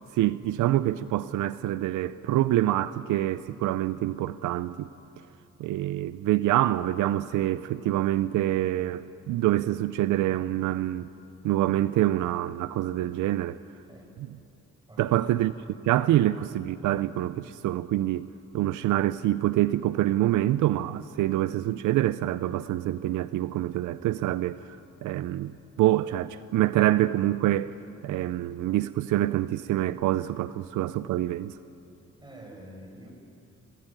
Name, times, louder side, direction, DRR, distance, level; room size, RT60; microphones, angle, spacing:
voice 1, 0.1-4.9 5.6-11.1 11.4-13.6 15.0-15.5 15.8-18.3 18.5-24.6 25.0-25.5 25.8-27.7 28.0-31.5, right 14 dB, 80° right, 0.6 m, -26 dB
voice 2, 14.9-15.3 32.2-33.1, right 1 dB, 15° right, 7.1 m, -47 dB
25.0 x 18.5 x 8.9 m
cardioid pair, 90°, 30 cm